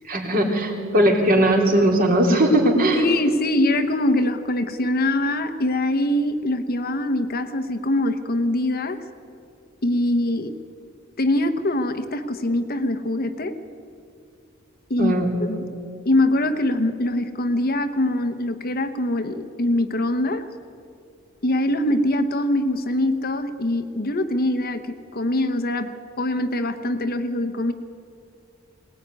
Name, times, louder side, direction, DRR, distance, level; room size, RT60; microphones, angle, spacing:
voice 1, 0.1-3.0 15.0-15.3, right 1 dB, 45° right, 1 dB, 3.7 m, -19 dB
voice 2, 2.9-9.0 9.8-10.5 11.2-13.6 14.9-15.1 15.4-15.6 16.0-20.5 21.4-27.7, left 1 dB, 45° left, 10 dB, 1.1 m, -23 dB
22.0 x 18.5 x 9.6 m, 2.5 s
head